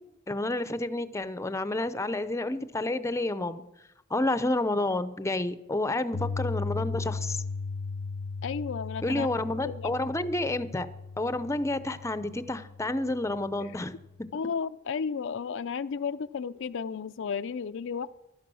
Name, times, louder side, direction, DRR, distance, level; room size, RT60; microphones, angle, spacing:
voice 1, 0.3-3.6 4.1-7.4 9.0-10.9 11.2-13.9 14.2-14.3, left 2 dB, 15° left, 13 dB, 0.6 m, -30 dB
Piano, 6.1-14.2, left 4 dB, 85° left, 0.8 m, -37 dB
voice 2, 8.4-9.3 9.6-9.9 13.6-13.7 14.3-18.1, left 6 dB, 65° left, 12 dB, 0.4 m, -33 dB
16.0 x 11.5 x 6.2 m, 0.92 s
head